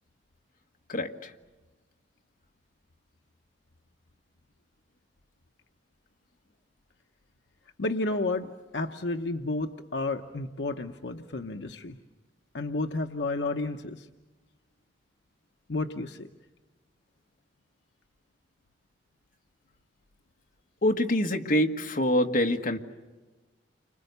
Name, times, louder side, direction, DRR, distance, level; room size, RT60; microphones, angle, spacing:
voice 1, 0.9-1.3 20.8-22.8, left 1 dB, 50° left, 3 dB, 1.6 m, -25 dB
voice 2, 7.8-12.0 12.5-14.1 15.7-16.3, left 2 dB, 75° left, 5 dB, 1.0 m, -31 dB
30.0 x 25.5 x 6.8 m, 1.2 s
head